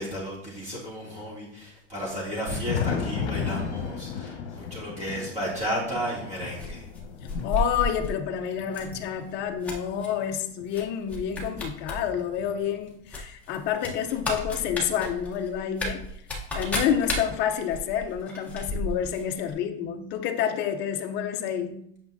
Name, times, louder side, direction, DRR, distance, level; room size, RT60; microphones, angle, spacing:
voice 1, 0.0-6.9, equal, 20° right, -5 dB, 2.6 m, -33 dB
Thunder, 2.1-10.7 11.4-13.1 14.2-14.3 14.9-15.0 16.8-16.9 18.3-18.4 20.0-20.1, left 6 dB, 65° left, 1.2 m, -36 dB
sound 1, 6.6-8.2 8.7-9.0 9.3-10.1 10.7-10.8 11.1-12.0 12.3-12.4 13.1-19.2 19.5-19.6, left 2 dB, 5° left, 1.0 m, -32 dB
voice 2, 7.2-16.1 16.5-21.8, left 8 dB, 30° left, 5 dB, 0.6 m, -29 dB
8.5 x 5.8 x 2.7 m, 0.72 s
supercardioid pair, 160°, 36 cm